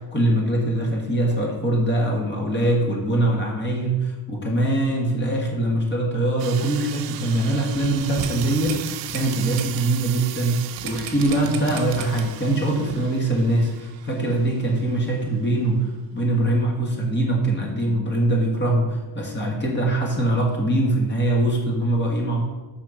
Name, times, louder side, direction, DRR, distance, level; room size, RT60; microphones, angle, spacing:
voice 1, 0.1-10.6 10.8-22.4, right 1 dB, 25° left, 0 dB, 1.5 m, -22 dB
sound 1, 6.4-15.0, right 13 dB, 75° right, 0.6 m, -38 dB
sound 2, 7.7-9.8 10.2-10.3 10.8-12.4 12.9-13.0, right 7 dB, 55° right, 0.9 m, -35 dB
6.4 x 5.7 x 5.0 m, 1.2 s
cardioid pair, 160°, 44 cm